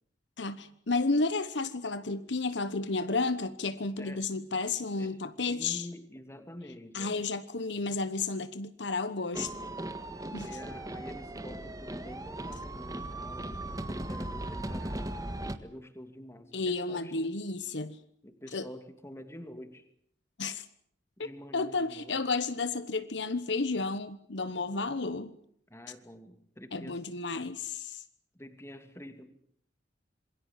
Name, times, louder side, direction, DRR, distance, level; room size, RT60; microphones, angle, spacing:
voice 1, 0.4-5.9 6.9-9.5 10.3-10.5 16.5-18.0 18.5-18.7 20.4-20.6 21.5-25.3 26.7-28.0, left 3 dB, 65° left, 1.1 m, -32 dB
voice 2, 4.0-4.3 5.0-5.2 5.5-7.3 10.4-15.1 15.6-17.4 18.2-19.9 21.2-22.2 25.7-27.0 27.3-27.6 28.3-29.3, left 1 dB, 15° left, 2.5 m, -47 dB
sound 1, 9.3-15.6, right 1 dB, 20° right, 1.5 m, -38 dB
27.0 x 22.0 x 7.5 m
head